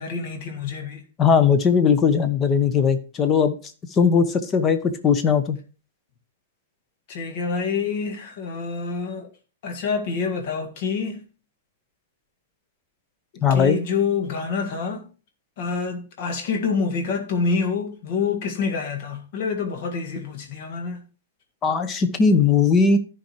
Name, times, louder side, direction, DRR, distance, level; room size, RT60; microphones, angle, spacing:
voice 1, 0.0-1.0 7.1-9.3 9.6-11.3 13.3-15.1 15.6-21.0, left 5 dB, 50° left, 1.8 m, -27 dB
voice 2, 1.2-3.6 3.9-5.6 13.4-13.8 21.6-23.0, left 6 dB, 25° left, 0.9 m, -19 dB
14.0 x 4.9 x 3.1 m
figure-of-eight pair, 105°, 0 cm